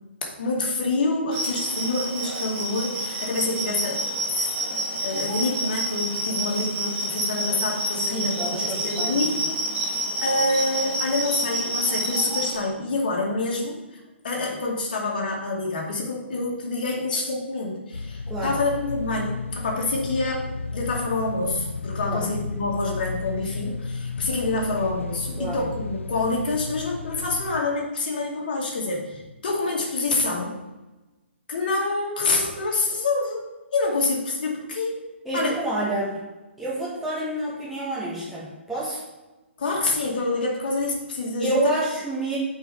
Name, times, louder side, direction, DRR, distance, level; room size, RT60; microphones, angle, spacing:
voice 1, 0.4-9.6 9.8-14.0 14.2-30.6 31.5-33.5 33.7-35.0 35.3-35.6 39.6-41.7, left 2 dB, 45° left, -1 dB, 2.3 m, -27 dB
sound 1, 1.3-12.6, right 1 dB, 30° right, 2.7 m, -28 dB
voice 2, 8.1-9.2 18.3-18.5 22.0-22.3 25.4-25.6 35.2-36.2 36.6-39.0 41.4-42.4, right 2 dB, 5° right, -8 dB, 2.1 m, -28 dB
sound 2, 17.9-27.6, left 3 dB, 75° left, 0.4 m, -33 dB
8.0 x 4.7 x 5.0 m, 1.1 s
figure-of-eight pair, 130°, 7 cm